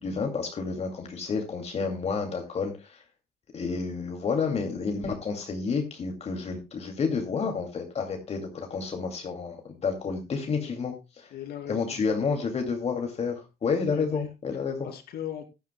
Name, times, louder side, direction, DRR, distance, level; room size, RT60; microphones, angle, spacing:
voice 1, 0.0-3.0 3.5-11.3 11.7-14.9, left 5 dB, 40° left, 2.4 m, -30 dB
voice 2, 11.3-12.1 13.8-14.3 14.8-15.5, left 10 dB, 70° left, 2.6 m, -39 dB
16.0 x 11.5 x 2.2 m
cardioid pair, 110°, 17 cm